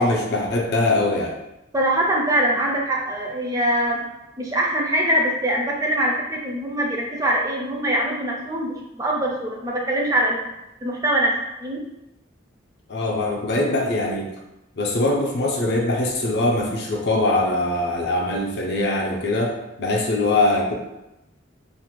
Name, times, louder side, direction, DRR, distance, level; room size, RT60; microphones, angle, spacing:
voice 1, 0.0-1.4 12.9-14.3 14.8-20.7, left 2 dB, 55° left, 0 dB, 0.5 m, -22 dB
voice 2, 1.7-4.0 4.4-10.4 10.8-11.3 11.6-11.8, right 1 dB, 15° right, -2 dB, 0.3 m, -23 dB
2.5 x 2.1 x 2.9 m, 0.92 s
head